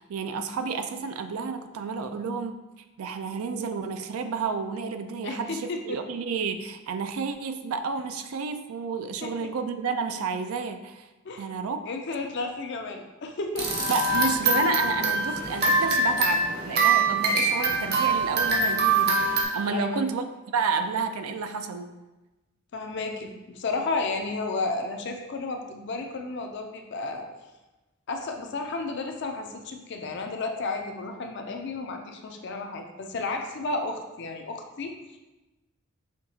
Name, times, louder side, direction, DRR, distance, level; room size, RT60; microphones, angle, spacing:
voice 1, 0.0-2.6 3.0-11.1 11.4-11.8 13.9-21.9, right 5 dB, 80° right, 8 dB, 0.4 m, -31 dB
voice 2, 5.2-6.0 9.2-9.5 11.2-11.5 11.9-13.9 19.7-20.0 22.7-27.3 28.1-34.9, left 3 dB, 55° left, 4 dB, 0.5 m, -32 dB
sound 1, 13.6-19.4, right 3 dB, 50° right, 0.8 m, -24 dB
5.8 x 2.8 x 2.7 m, 1.1 s
head